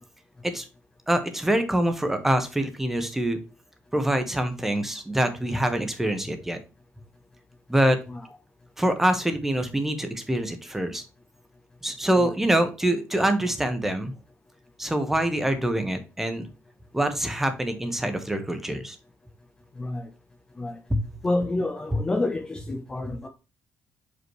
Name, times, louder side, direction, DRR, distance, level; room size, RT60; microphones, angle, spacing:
voice 1, 1.1-3.4 3.9-6.6 7.7-8.0 8.8-11.0 11.8-14.1 14.8-16.5 16.9-19.0 20.9-21.0, right 1 dB, 5° right, 1.0 m, -25 dB
voice 2, 19.8-20.1 20.6-20.8 21.2-23.3, left 2 dB, 20° left, 0.7 m, -29 dB
6.4 x 5.3 x 3.1 m
cardioid pair, 150°, 5 cm